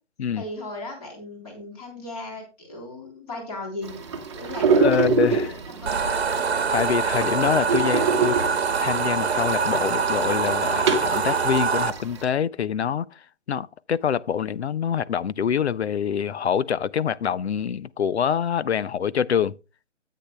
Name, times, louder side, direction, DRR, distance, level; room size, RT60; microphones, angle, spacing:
voice 1, 0.4-4.0 4.3-6.1, left 2 dB, 30° left, 3.5 m, -37 dB
sound 1, 3.8-12.2, right 5 dB, 25° right, 1.1 m, -27 dB
voice 2, 4.8-5.5 6.7-8.4 8.8-13.2 13.5-19.6, left 8 dB, 65° left, 0.5 m, -25 dB
sound 2, 5.9-11.9, right 5 dB, 60° right, 1.1 m, -24 dB
13.0 x 8.4 x 2.2 m
hypercardioid pair, 160°, 36 cm